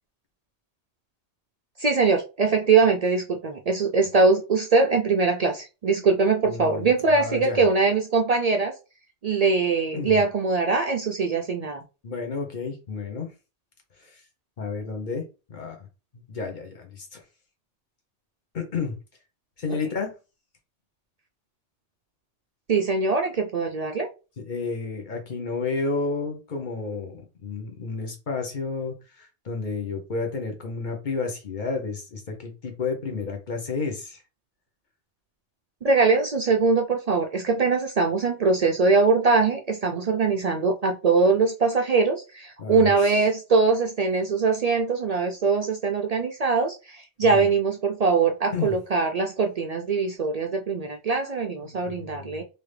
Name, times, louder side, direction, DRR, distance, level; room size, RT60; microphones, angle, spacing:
voice 1, 1.8-8.7 9.2-11.8 22.7-24.1 35.8-52.4, right 4 dB, 55° right, 0.4 m, -22 dB
voice 2, 6.4-7.6 9.9-10.2 12.0-13.3 14.0-14.2 14.6-15.9 16.1-17.2 18.5-18.9 19.6-20.2 24.4-34.2 42.6-43.2 47.3-47.4 48.5-48.7 51.6-52.4, left 4 dB, 45° left, 0.9 m, -31 dB
3.4 x 2.7 x 3.2 m
omnidirectional pair, 1.1 m